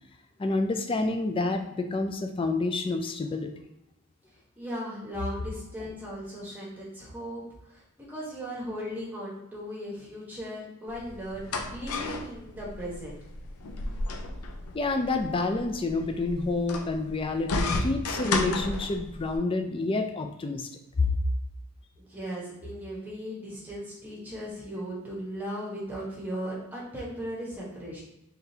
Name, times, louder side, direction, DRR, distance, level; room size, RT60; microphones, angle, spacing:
voice 1, 0.4-3.5 14.7-20.7 21.0-21.2, left 3 dB, 25° left, 6 dB, 0.4 m, -28 dB
voice 2, 4.6-13.2 22.0-28.0, equal, 10° right, -5 dB, 1.2 m, -37 dB
sound 1, 10.9-19.4, left 2 dB, 85° left, 0.5 m, -33 dB
3.8 x 3.3 x 2.8 m, 0.89 s
head